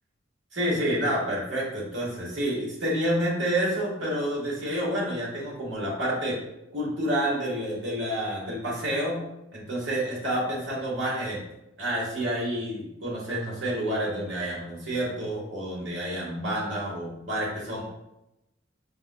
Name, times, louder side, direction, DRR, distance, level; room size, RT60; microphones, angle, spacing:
voice 1, 0.5-6.4 6.7-9.2 9.5-11.4 11.8-17.9, right 1 dB, 65° right, -4 dB, 1.5 m, -29 dB
5.4 x 3.4 x 2.2 m, 0.89 s
head